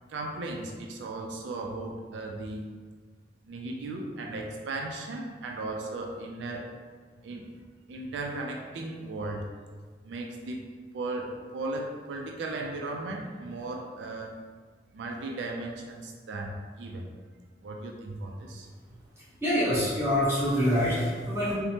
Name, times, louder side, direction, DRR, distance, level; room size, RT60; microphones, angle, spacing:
voice 1, 0.1-2.7 3.5-6.7 7.2-7.5 7.9-9.4 10.0-10.7 10.9-14.3 14.9-17.1 17.6-18.7, right 2 dB, 90° right, 1 dB, 0.3 m, -36 dB
voice 2, 19.4-21.5, equal, 15° right, -9 dB, 0.8 m, -25 dB
3.2 x 2.0 x 2.7 m, 1.5 s
head